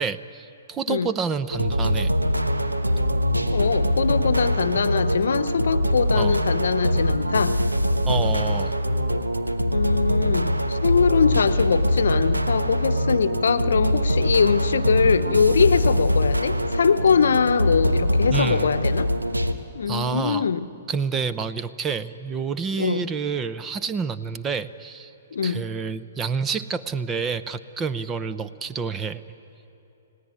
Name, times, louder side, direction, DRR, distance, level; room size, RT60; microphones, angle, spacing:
voice 1, 0.0-2.1 6.1-6.4 8.0-8.7 18.3-18.7 19.9-20.5 20.9-25.1 25.4-29.2, right 5 dB, 20° right, 12 dB, 0.8 m, -28 dB
sound 1, 1.5-19.5, equal, 90° right, 1.3 m, -23 dB
voice 2, 3.5-7.6 9.7-19.1 19.7-20.7 22.8-23.1 25.3-25.7, left 6 dB, 65° left, 14 dB, 0.9 m, -22 dB
30.0 x 17.5 x 9.7 m, 2.9 s
figure-of-eight pair, 115°, 0 cm